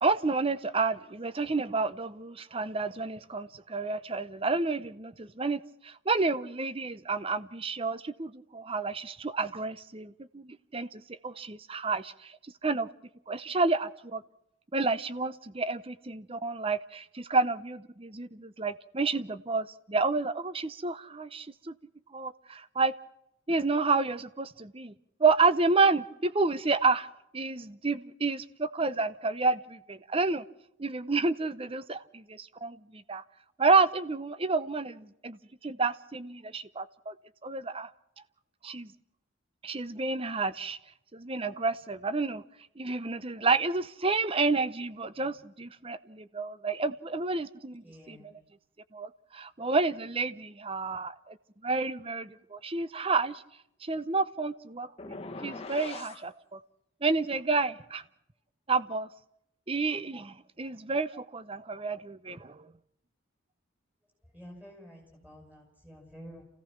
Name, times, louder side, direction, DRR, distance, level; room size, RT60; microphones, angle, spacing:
voice 1, 0.0-12.9 13.3-14.2 14.7-21.7 22.1-22.9 23.5-24.9 25.2-27.1 27.3-30.4 30.8-33.2 33.6-35.4 35.6-37.1 37.4-37.9 38.6-38.9 39.6-40.8 41.1-42.4 42.8-48.3 48.9-51.4 51.6-53.4 53.8-56.6 57.0-58.0 58.7-59.1 59.7-62.6, right 3 dB, 25° right, 0.7 m, -30 dB
voice 2, 47.8-48.3 64.3-66.4, equal, 10° right, 7.8 m, -49 dB
sound 1, 55.0-56.2, left 3 dB, 30° left, 1.3 m, -41 dB
28.0 x 16.5 x 5.9 m
head